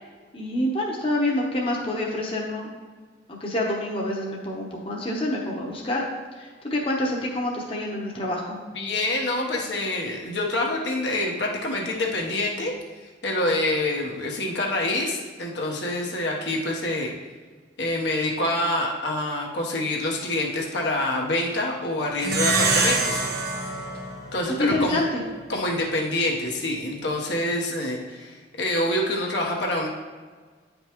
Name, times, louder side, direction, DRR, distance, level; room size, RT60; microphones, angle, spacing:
voice 1, 0.3-2.7 3.4-6.1 6.4-8.6 24.6-25.2, left 1 dB, 30° left, -2 dB, 0.9 m, -27 dB
voice 2, 8.7-12.7 13.2-17.1 17.8-23.2 24.3-25.0 25.5-29.9, left 1 dB, 70° left, -1 dB, 1.1 m, -26 dB
Plucked string instrument, 22.2-25.0, right 3 dB, 55° right, 0.9 m, -25 dB
9.2 x 5.3 x 3.0 m, 1.5 s
head